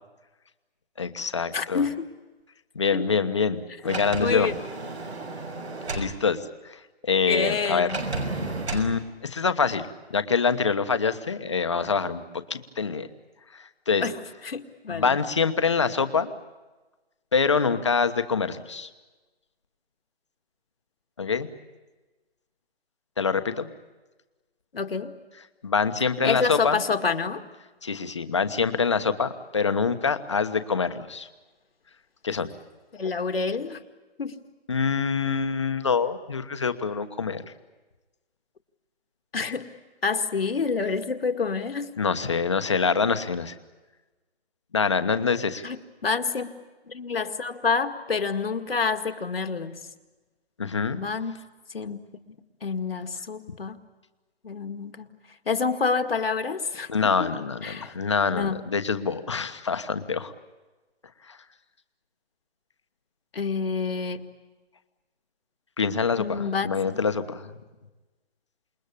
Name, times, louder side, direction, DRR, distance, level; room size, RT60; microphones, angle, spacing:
voice 1, 1.0-1.8 2.7-4.5 5.9-6.4 6.6-6.8 7.1-7.9 8.7-13.1 13.5-14.1 14.9-16.3 17.3-18.9 21.2-21.5 23.2-23.7 25.6-26.8 27.8-31.3 32.2-32.5 34.7-37.4 42.0-43.5 44.7-45.6 50.6-51.0 56.9-60.3 61.3-61.4 65.8-67.5, left 5 dB, 30° left, 10 dB, 1.2 m, -25 dB
voice 2, 1.5-2.0 2.9-3.0 4.2-4.5 7.3-8.0 14.0-14.2 14.4-15.2 24.7-25.1 26.2-27.4 32.9-33.8 34.2-34.4 39.3-39.7 40.0-41.9 45.6-46.5 46.9-49.8 50.9-51.4 51.7-52.0 52.6-53.8 54.4-55.1 55.5-57.3 57.6-57.9 58.3-58.6 63.3-64.2 66.2-66.7, left 5 dB, 65° left, 7 dB, 2.1 m, -28 dB
Sliding door, 3.8-6.1 7.9-8.9, right 2 dB, 90° right, 6.2 m, -32 dB
28.0 x 21.5 x 8.4 m, 1.2 s
hypercardioid pair, 180°, 32 cm